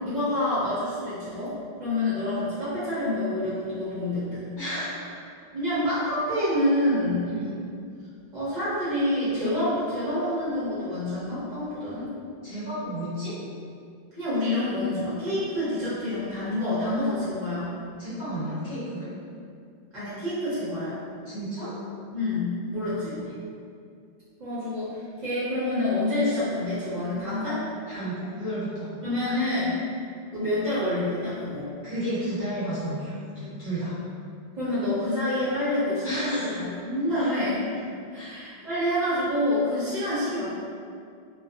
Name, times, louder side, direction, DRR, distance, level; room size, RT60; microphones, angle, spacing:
voice 1, 0.1-1.5 1.8-4.5 5.5-7.3 8.3-12.1 14.2-17.7 19.9-21.0 22.1-23.2 24.4-27.7 29.0-29.7 30.3-31.7 34.6-37.7 38.1-40.5, left 1 dB, 50° right, -12 dB, 0.8 m, -27 dB
voice 2, 4.6-5.1 7.2-7.6 12.4-13.3 18.0-19.1 21.2-21.7 23.1-23.3 27.9-28.9 31.8-33.9 36.0-36.6 37.1-37.3 38.1-38.4, right 1 dB, 50° left, -13 dB, 1.2 m, -32 dB
2.4 x 2.2 x 2.5 m, 2.3 s
omnidirectional pair, 1.1 m